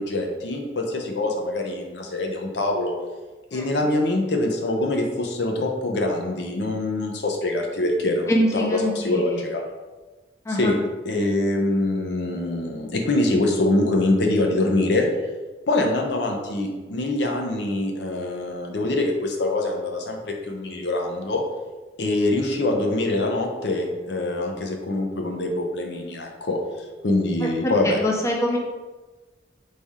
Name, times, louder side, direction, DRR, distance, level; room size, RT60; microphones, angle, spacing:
voice 1, 0.0-3.0 3.5-9.6 10.5-10.8 11.1-15.1 15.7-21.4 22.0-28.0, left 2 dB, 75° left, 2 dB, 0.7 m, -24 dB
voice 2, 8.3-9.4 10.5-10.7 27.4-28.6, equal, 15° left, -1 dB, 0.5 m, -24 dB
4.1 x 3.3 x 3.6 m, 1.2 s
head